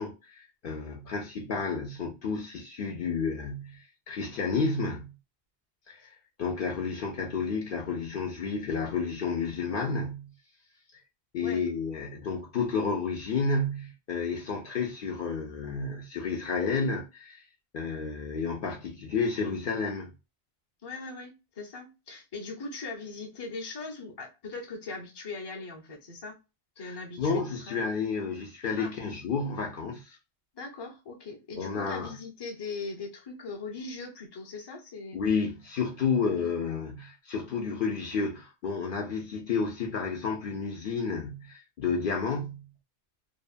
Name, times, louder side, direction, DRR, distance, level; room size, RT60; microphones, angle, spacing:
voice 1, 0.0-5.2 5.9-10.3 11.3-17.5 17.7-20.1 26.8-30.2 31.6-32.1 35.1-42.7, left 4 dB, 60° left, 0.7 m, -31 dB
voice 2, 20.8-26.4 26.8-27.8 28.8-28.9 30.5-35.2 36.4-36.5, left 3 dB, 30° left, 0.6 m, -40 dB
2.8 x 2.2 x 2.4 m
omnidirectional pair, 1.1 m